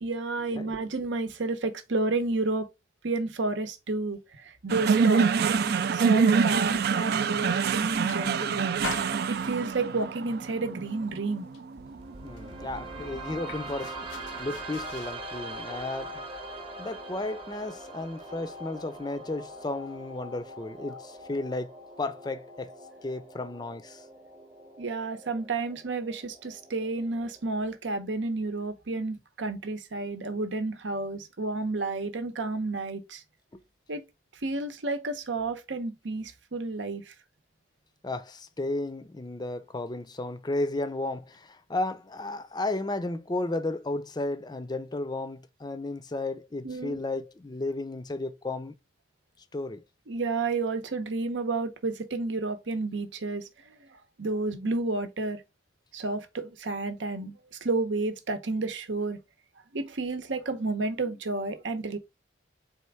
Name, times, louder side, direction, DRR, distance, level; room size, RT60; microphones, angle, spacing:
voice 1, 0.0-2.7 3.0-11.4 24.8-33.2 33.9-34.0 34.4-37.1 46.6-47.0 50.1-55.4 55.9-59.2 59.7-62.0, right 3 dB, 75° right, 0.8 m, -31 dB
sound 1, 4.7-13.1, right 5 dB, 55° right, 0.4 m, -26 dB
sound 2, 6.9-7.6 7.9-8.5 8.8-9.8 10.3-10.6 10.8-11.8 12.1-12.2 12.4-15.2, left 6 dB, 80° left, 0.6 m, -43 dB
sound 3, 11.8-27.8, right 1 dB, 30° right, 0.9 m, -42 dB
voice 2, 12.2-14.0 14.4-16.2 16.8-22.7 23.0-24.0 33.5-33.6 38.0-48.8 49.5-49.8, left 2 dB, 20° left, 0.5 m, -33 dB
4.3 x 3.5 x 3.3 m
head